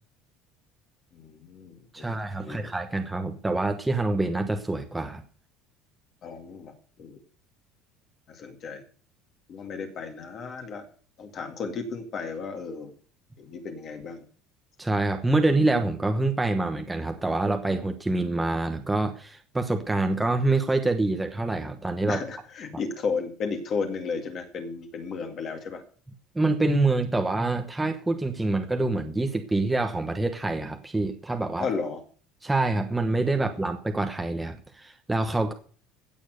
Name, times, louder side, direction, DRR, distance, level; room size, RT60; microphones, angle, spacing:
voice 1, 1.1-2.7 6.2-6.7 7.0-7.2 8.3-8.8 9.5-10.9 11.2-12.9 13.4-14.2 22.1-25.8 31.6-32.0, left 5 dB, 35° left, 5 dB, 2.1 m, -34 dB
voice 2, 1.9-5.2 14.8-22.2 26.3-31.7 32.4-35.5, right 2 dB, 5° right, 5 dB, 1.1 m, -26 dB
16.0 x 7.2 x 6.5 m, 0.42 s
cardioid pair, 165°, 0 cm